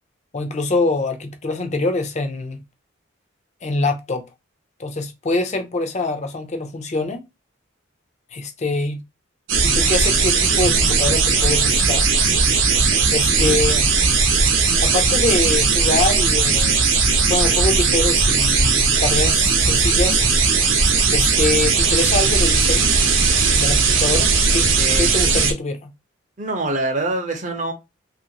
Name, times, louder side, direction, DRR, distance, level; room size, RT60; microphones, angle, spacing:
voice 1, 0.3-2.6 3.6-4.2 4.8-7.2 8.3-9.0 9.6-12.1 13.1-13.8 14.8-16.8 17.3-20.2 21.1-22.9 23.5-24.7 25.0-25.9, left 3 dB, 35° left, 0.5 m, -24 dB
sound 1, 9.5-25.5, right 4 dB, 75° right, 0.7 m, -17 dB
voice 2, 24.8-25.1 26.4-27.7, right 2 dB, 40° right, 0.6 m, -25 dB
2.9 x 2.5 x 2.8 m
head